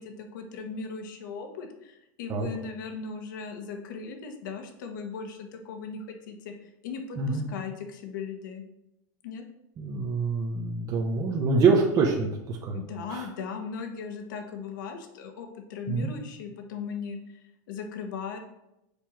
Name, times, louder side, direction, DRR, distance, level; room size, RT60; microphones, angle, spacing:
voice 1, 0.0-6.5 6.8-8.6 9.2-9.4 12.7-18.4, left 5 dB, 75° left, 4 dB, 1.4 m, -38 dB
voice 2, 9.8-12.8 13.1-13.3 15.9-16.1, right 4 dB, 30° right, -1 dB, 1.0 m, -25 dB
6.9 x 4.5 x 4.6 m, 0.86 s
supercardioid pair, 140°, 10 cm